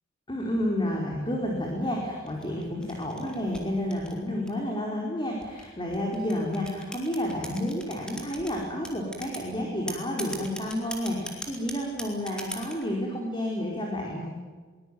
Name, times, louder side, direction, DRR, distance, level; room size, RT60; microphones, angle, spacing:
voice 1, 0.3-14.4, left 1 dB, 25° left, -1 dB, 4.5 m, -30 dB
sound 1, 2.3-4.7 5.4-8.5 8.8-9.5 9.9-12.8, equal, 5° left, 4.2 m, -39 dB
23.0 x 20.5 x 9.3 m, 1.4 s
head